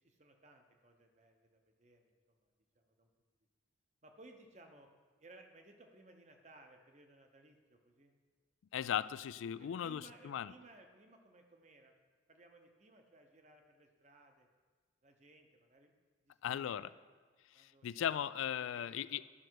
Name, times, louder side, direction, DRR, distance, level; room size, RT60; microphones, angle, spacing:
voice 1, 0.0-3.1 4.0-4.9 5.2-8.1 9.6-11.9 12.3-14.5 15.0-15.9 16.2-17.0 17.5-18.1 18.6-19.2, right 2 dB, 35° right, 4 dB, 0.9 m, -61 dB
voice 2, 8.7-10.5 16.4-16.9 17.5-19.2, left 9 dB, 80° left, 16 dB, 0.3 m, -38 dB
11.0 x 6.4 x 4.6 m, 1.4 s
head